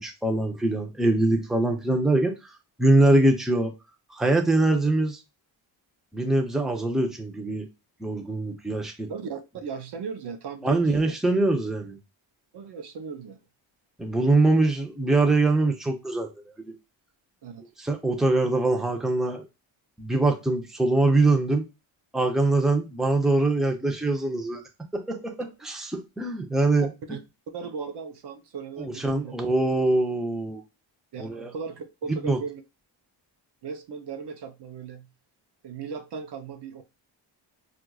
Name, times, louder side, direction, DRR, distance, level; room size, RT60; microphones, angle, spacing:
voice 1, 0.0-2.3 2.8-3.7 4.2-5.2 6.1-7.6 8.0-9.1 10.6-12.0 14.0-16.3 16.6-16.7 17.8-19.4 20.0-21.6 22.1-24.6 24.9-26.9 28.8-30.6 31.2-31.5 32.2-32.4, right 2 dB, ahead, 0.7 m, -23 dB
voice 2, 9.1-11.1 12.5-13.4 17.4-17.6 26.8-27.2 27.5-29.3 31.1-32.6 33.6-35.1 35.6-36.8, right 6 dB, 60° right, 0.7 m, -37 dB
4.4 x 2.5 x 2.3 m
cardioid pair, 75°, 47 cm